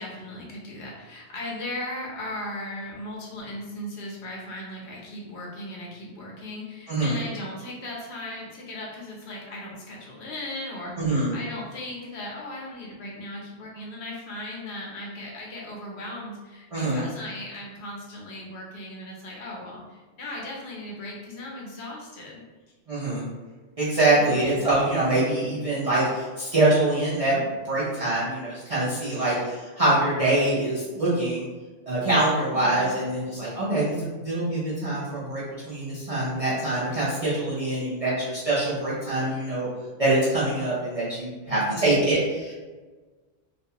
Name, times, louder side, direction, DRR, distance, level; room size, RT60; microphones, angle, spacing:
voice 1, 0.0-22.4 29.3-29.5 32.5-33.0 41.5-42.0, left 1 dB, 70° left, -2 dB, 0.9 m, -37 dB
voice 2, 11.0-11.3 16.7-17.0 22.9-23.2 23.8-31.5 31.9-39.7 40.0-42.5, right 2 dB, 45° right, -9 dB, 0.5 m, -24 dB
2.4 x 2.2 x 2.7 m, 1.3 s
omnidirectional pair, 1.2 m